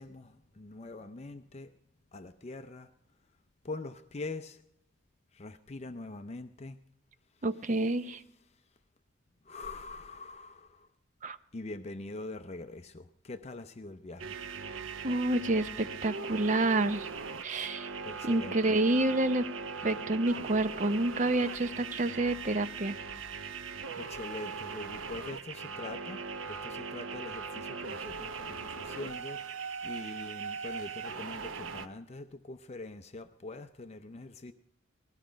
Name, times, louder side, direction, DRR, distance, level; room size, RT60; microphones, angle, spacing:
voice 1, 0.0-1.7 2.1-2.9 3.6-4.6 5.3-6.8 9.5-10.9 11.5-14.3 18.0-18.7 24.0-26.2 26.5-34.5, left 2 dB, 35° left, 9 dB, 0.5 m, -43 dB
voice 2, 7.4-8.2 11.2-11.4 15.0-17.1 17.4-17.9 18.2-19.5 19.8-22.9, right 2 dB, 40° right, 12 dB, 0.6 m, -28 dB
sound 1, 14.2-31.9, right 5 dB, 85° right, 0.8 m, -40 dB
19.0 x 13.5 x 5.1 m, 0.77 s
head